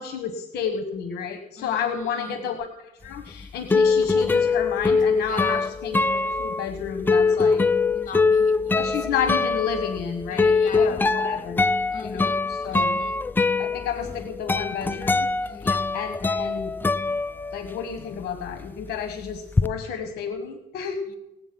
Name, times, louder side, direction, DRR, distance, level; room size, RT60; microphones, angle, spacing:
voice 1, 0.0-7.6 8.7-11.7 12.0-12.9 13.6-15.6 15.9-16.7 17.5-21.0, left 7 dB, 70° left, 8 dB, 1.2 m, -31 dB
voice 2, 1.6-2.5 5.2-5.7 7.9-9.2 10.3-11.3 11.9-12.4 12.7-13.2 15.5-15.9 21.1-21.2, left 5 dB, 50° left, 7 dB, 2.2 m, -40 dB
sound 1, 3.1-17.9 18.2-19.7, left 4 dB, 10° left, 0.4 m, -23 dB
18.5 x 8.1 x 6.0 m, 0.93 s
cardioid pair, 110°, 17 cm